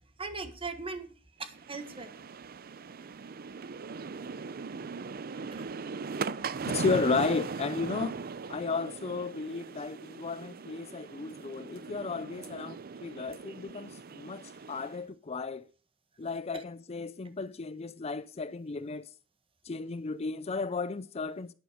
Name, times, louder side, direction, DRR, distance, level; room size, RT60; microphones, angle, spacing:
voice 1, 0.2-2.1 5.5-5.6, right 4 dB, 30° right, 1.5 m, -39 dB
sound 1, 1.5-15.0, right 4 dB, 50° right, 0.5 m, -39 dB
voice 2, 6.7-8.2 8.5-15.7 16.2-19.1 19.6-21.5, left 4 dB, 30° left, 0.5 m, -34 dB
11.5 x 10.5 x 5.0 m
head